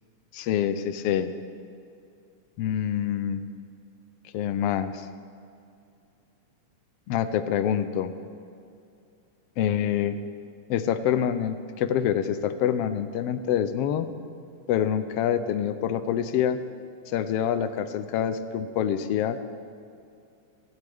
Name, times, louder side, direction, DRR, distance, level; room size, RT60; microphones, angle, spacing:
voice 1, 0.3-1.3 2.6-3.4 4.3-5.1 7.1-8.1 9.6-10.2 10.7-14.1 14.7-16.6 17.1-19.4, left 9 dB, 75° left, 11 dB, 1.4 m, -26 dB
30.0 x 11.5 x 3.5 m, 2.5 s
omnidirectional pair, 3.3 m